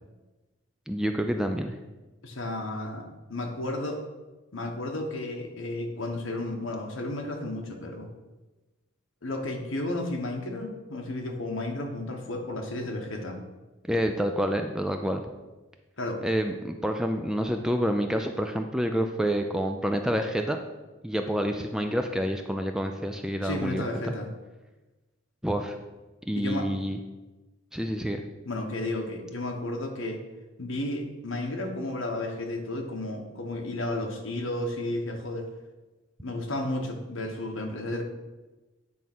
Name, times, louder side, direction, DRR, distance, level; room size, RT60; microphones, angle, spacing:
voice 1, 0.9-1.8 13.9-15.2 16.2-20.6 21.0-24.1 25.4-25.7 26.3-27.0 27.7-28.2, equal, 5° right, 5 dB, 0.3 m, -28 dB
voice 2, 2.2-4.0 4.5-8.1 9.2-13.4 16.0-16.2 23.4-24.3 26.3-26.7 28.5-30.2 30.6-35.5 36.2-38.0, left 1 dB, 70° left, 3 dB, 1.2 m, -33 dB
9.1 x 3.5 x 6.0 m, 1.1 s
head